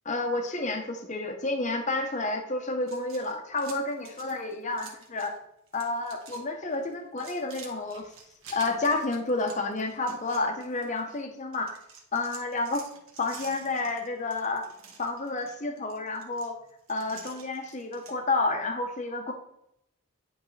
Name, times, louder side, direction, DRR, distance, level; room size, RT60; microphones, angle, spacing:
voice 1, 0.1-5.3 5.7-8.1 8.5-11.7 12.1-12.8 13.2-14.6 15.0-16.6 16.9-19.3, left 2 dB, 35° left, 4 dB, 0.7 m, -30 dB
sound 1, 2.8-5.4 5.7-6.4 6.7-11.2 11.5-18.2, right 5 dB, 70° right, 1.4 m, -49 dB
10.5 x 3.8 x 3.2 m, 0.77 s
head